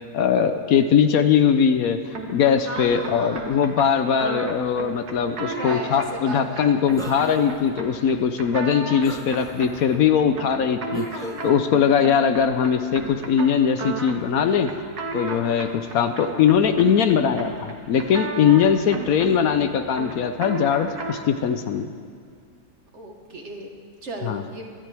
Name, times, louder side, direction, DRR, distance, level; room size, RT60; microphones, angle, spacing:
voice 1, 0.1-2.0 2.3-14.7 15.1-21.9 24.2-24.4, left 7 dB, 70° left, 8 dB, 1.0 m, -21 dB
sound 1, 2.1-21.3, right 3 dB, 75° right, 1.9 m, -35 dB
voice 2, 2.6-3.6 5.3-7.5 22.9-24.7, right 2 dB, 45° right, 1 dB, 1.7 m, -36 dB
sound 2, 6.9-7.5 8.1-8.2 9.0-9.8 10.9-11.5, equal, 5° left, 0.8 m, -38 dB
25.0 x 11.0 x 3.4 m, 2.2 s
omnidirectional pair, 1.7 m